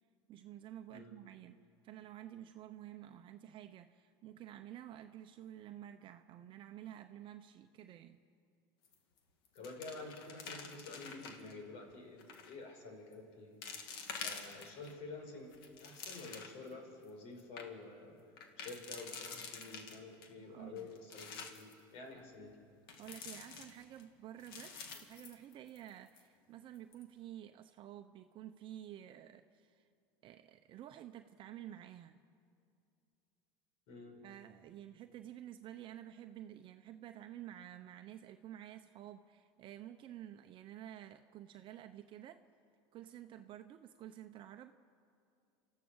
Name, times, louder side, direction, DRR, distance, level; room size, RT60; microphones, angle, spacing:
voice 1, 0.3-1.6 1.8-8.2 20.4-20.9 23.0-29.8 30.2-32.2 34.2-42.4 42.9-44.7, right 11 dB, 45° right, 7 dB, 0.8 m, -51 dB
sound 1, 8.8-9.2 9.4-11.5 12.2-12.6 13.1-13.2 13.6-14.9 15.4-16.7 17.1-17.2 17.4-17.7 18.4-20.3 20.8-21.7 22.9-24.0 24.4-25.9 26.2-26.3 26.8-27.0, left 5 dB, 85° left, 2.4 m, -48 dB
voice 2, 9.5-13.6 14.2-15.5 15.8-18.2 18.6-22.6 33.9-34.2, left 3 dB, 65° left, 3 dB, 5.4 m, -49 dB
29.0 x 14.5 x 6.4 m, 2.6 s
supercardioid pair, 110°, 12 cm